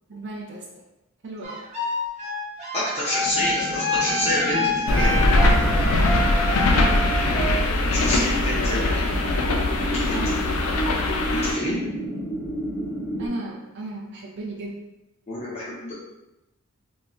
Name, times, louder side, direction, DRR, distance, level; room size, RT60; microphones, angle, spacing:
voice 1, 0.1-0.7 1.2-1.6 6.7-7.1 10.1-10.4 13.2-14.8, right 2 dB, 55° right, 0 dB, 0.4 m, -34 dB
sound 1, 1.4-7.6, left 1 dB, 35° right, 0.7 m, -27 dB
voice 2, 2.7-5.2 7.9-9.1 9.9-10.2 11.3-11.8 15.3-15.9, left 1 dB, 30° left, -8 dB, 0.6 m, -27 dB
sound 2, 3.2-13.3, equal, ahead, 0.9 m, -32 dB
sound 3, 4.9-11.5, left 2 dB, 75° left, 0.4 m, -21 dB
2.3 x 2.0 x 3.7 m, 0.95 s
head